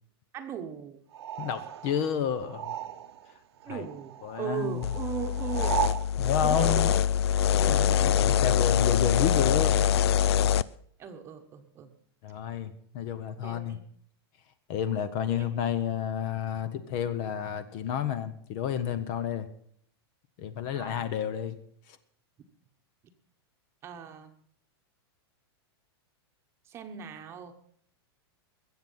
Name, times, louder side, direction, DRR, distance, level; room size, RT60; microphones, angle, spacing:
voice 1, 0.3-1.0 3.6-5.7 6.4-7.0 7.6-8.4 11.0-11.9 13.4-13.8 15.3-15.5 20.7-21.1 23.8-24.3 26.7-27.5, right 8 dB, 20° right, 6 dB, 1.2 m, -38 dB
sound 1, 1.1-3.4 3.6-6.1, right 11 dB, 80° right, 1.1 m, -36 dB
voice 2, 1.4-2.7 3.7-3.8 4.2-4.8 6.2-6.9 7.5-10.1 12.2-13.8 14.7-19.5 20.4-21.5 21.9-22.0, left 9 dB, 35° left, 13 dB, 0.8 m, -31 dB
sound 2, 4.8-10.6, left 9 dB, 75° left, 0.5 m, -24 dB
21.5 x 7.8 x 5.6 m, 0.64 s
supercardioid pair, 170°, 14 cm